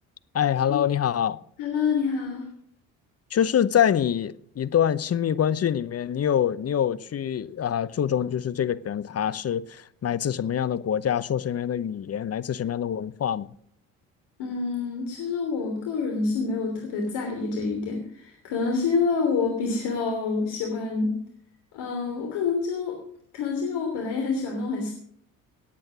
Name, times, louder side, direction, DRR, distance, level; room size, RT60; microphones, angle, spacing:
voice 1, 0.3-1.4 3.3-13.5, left 9 dB, 35° left, 0.8 m, -25 dB
voice 2, 1.6-2.5 14.4-21.2 21.7-23.0 23.3-24.9, left 4 dB, 65° left, 3.3 m, -27 dB
18.5 x 8.7 x 6.2 m
hypercardioid pair, 55°, 41 cm